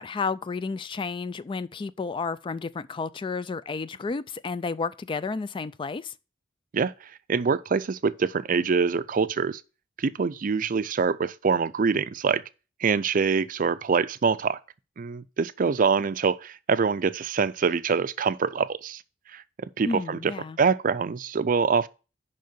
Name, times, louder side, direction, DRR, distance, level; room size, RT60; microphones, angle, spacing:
voice 1, 0.0-6.1 19.8-20.6, left 4 dB, 25° left, 0.3 m, -31 dB
voice 2, 7.3-9.6 10.0-12.4 12.8-14.6 15.0-19.0 19.3-19.4 19.8-21.9, right 5 dB, 45° right, 0.4 m, -25 dB
6.5 x 5.5 x 6.6 m
head